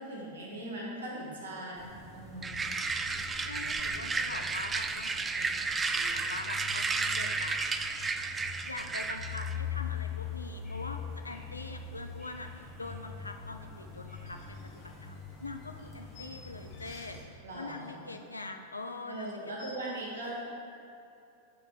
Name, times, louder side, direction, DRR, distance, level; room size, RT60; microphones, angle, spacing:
voice 1, 0.0-2.7 17.4-18.1 19.1-20.5, right 1 dB, 60° right, -3 dB, 1.6 m, -40 dB
sound 1, 1.8-17.2, left 6 dB, 10° left, 1.3 m, -43 dB
sound 2, 2.4-9.6, right 4 dB, 15° right, 0.3 m, -33 dB
voice 2, 3.1-8.0 8.6-20.0, left 2 dB, 80° left, 5 dB, 0.5 m, -44 dB
sound 3, 14.2-17.3 17.5-18.4 18.7-18.8 19.1-19.7, left 4 dB, 40° left, 1.2 m, -55 dB
9.4 x 3.4 x 4.8 m, 2.7 s
figure-of-eight pair, 90°, 0 cm